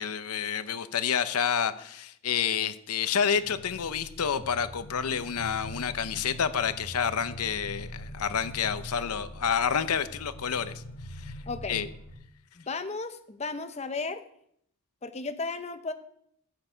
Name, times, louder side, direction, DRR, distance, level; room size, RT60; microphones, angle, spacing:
voice 1, 0.0-10.8 11.1-11.3 11.7-11.9, left 7 dB, 90° left, 0.7 m, -29 dB
sound 1, 3.3-12.1, equal, 65° left, 2.8 m, -43 dB
voice 2, 11.5-11.8 12.6-14.2 15.0-15.9, left 3 dB, 30° left, 0.6 m, -34 dB
15.0 x 7.7 x 5.0 m
head